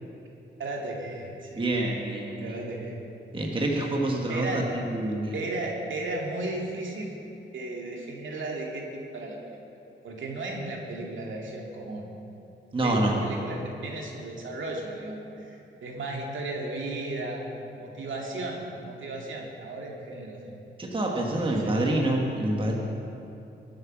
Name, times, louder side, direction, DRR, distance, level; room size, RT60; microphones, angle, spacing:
voice 1, 0.6-1.6 2.4-2.9 4.3-4.7 5.3-7.2 7.5-9.6 10.0-12.1 12.8-17.5 17.8-20.6 21.3-21.9, right 2 dB, 75° right, -1 dB, 2.4 m, -35 dB
voice 2, 1.5-2.6 3.3-5.4 12.7-13.2 20.8-22.7, right 1 dB, 25° right, -1 dB, 1.4 m, -27 dB
22.0 x 7.9 x 6.0 m, 2.8 s
wide cardioid pair, 170°, 20 cm